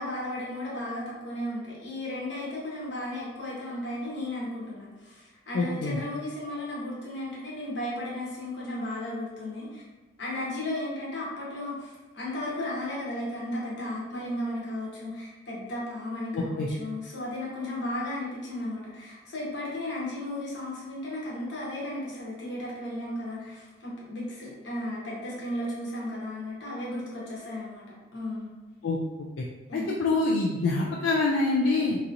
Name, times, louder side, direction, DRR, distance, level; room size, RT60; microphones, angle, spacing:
voice 1, 0.0-9.8 10.2-27.8 28.1-28.5 29.7-29.9, left 1 dB, 60° left, -5 dB, 0.9 m, -35 dB
voice 2, 5.5-6.0 16.3-16.7 28.8-29.0 29.7-32.0, left 3 dB, 80° left, -2 dB, 0.3 m, -25 dB
2.8 x 2.6 x 2.4 m, 1.2 s
head